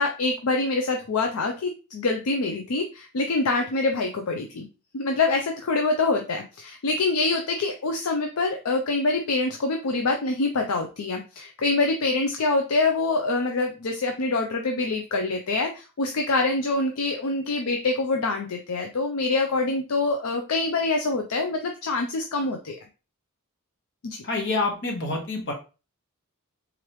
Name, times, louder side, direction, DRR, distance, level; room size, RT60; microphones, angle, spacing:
voice 1, 0.0-4.7 4.9-22.7 24.0-24.2, left 3 dB, 70° left, 4 dB, 0.5 m, -25 dB
voice 2, 24.2-25.5, left 3 dB, 55° left, 2 dB, 1.2 m, -27 dB
3.7 x 3.1 x 3.1 m, 0.32 s
head